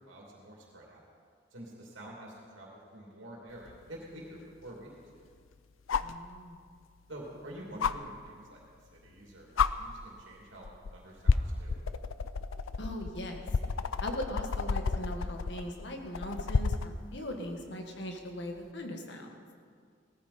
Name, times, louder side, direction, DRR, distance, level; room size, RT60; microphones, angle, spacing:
voice 1, 0.1-1.0 1.5-5.3 7.1-8.6 8.9-10.7 10.9-11.8, right 1 dB, 75° right, -3 dB, 2.8 m, -48 dB
sound 1, 3.7-3.8 5.9-6.2 7.8-7.9 9.1-9.2 9.6-9.7 10.6-10.9 11.2-16.9 18.6-18.7, left 5 dB, 85° left, 0.5 m, -30 dB
voice 2, 6.0-6.6 12.8-13.4 14.0-19.4, equal, 60° left, 3 dB, 1.7 m, -39 dB
18.0 x 14.5 x 4.4 m, 2.1 s
head